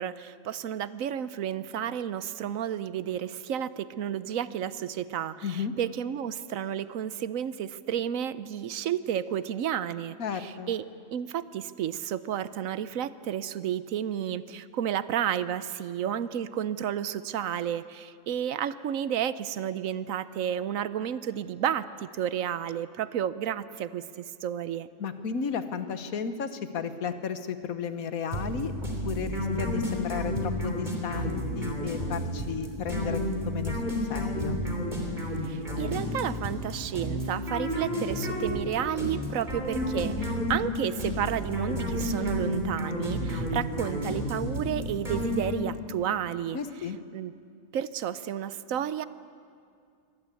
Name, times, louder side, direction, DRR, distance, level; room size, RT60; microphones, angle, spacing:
voice 1, 0.0-10.8 11.1-24.9 35.5-46.6 47.1-47.3 47.7-49.1, right 9 dB, 75° right, 15 dB, 1.1 m, -31 dB
voice 2, 5.4-5.7 10.2-10.7 25.0-28.7 29.0-34.6 46.5-47.0, left 6 dB, 90° left, 10 dB, 1.6 m, -33 dB
sound 1, 28.3-45.8, left 1 dB, 35° right, 3.5 m, -31 dB
23.0 x 18.0 x 8.4 m, 2.3 s
omnidirectional pair, 1.4 m